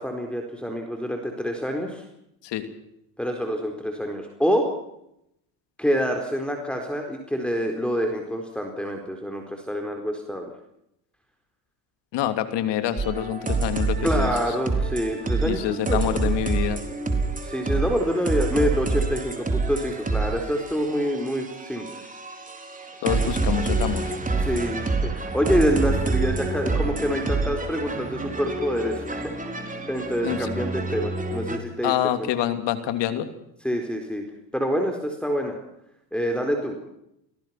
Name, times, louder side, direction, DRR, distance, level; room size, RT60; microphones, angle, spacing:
voice 1, 0.0-2.1 3.2-4.7 5.8-10.5 14.0-16.4 17.4-22.0 24.4-31.9 32.2-32.3 33.6-34.3 34.5-35.6 36.1-36.8, equal, ahead, 2 dB, 4.4 m, -27 dB
voice 2, 12.1-14.3 15.4-16.8 23.0-24.1 30.2-30.5 31.8-33.3, left 11 dB, 65° left, 9 dB, 3.0 m, -26 dB
sound 1, 13.0-31.6, right 3 dB, 15° right, 4.2 m, -27 dB
28.5 x 18.5 x 6.0 m, 0.80 s
supercardioid pair, 90°, 46 cm